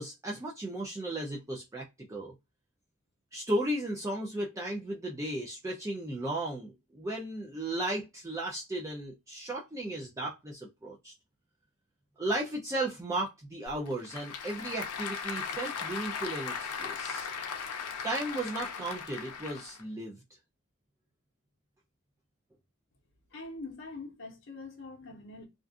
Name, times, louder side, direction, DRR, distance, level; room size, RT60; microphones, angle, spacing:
voice 1, 0.0-2.3 3.3-11.1 12.2-17.3 18.0-20.1, right 1 dB, 15° right, 0.3 m, -35 dB
Applause / Crowd, 13.7-19.8, left 6 dB, 90° left, 0.5 m, -38 dB
voice 2, 23.3-25.5, left 3 dB, 60° left, 0.7 m, -44 dB
2.4 x 2.4 x 2.3 m
head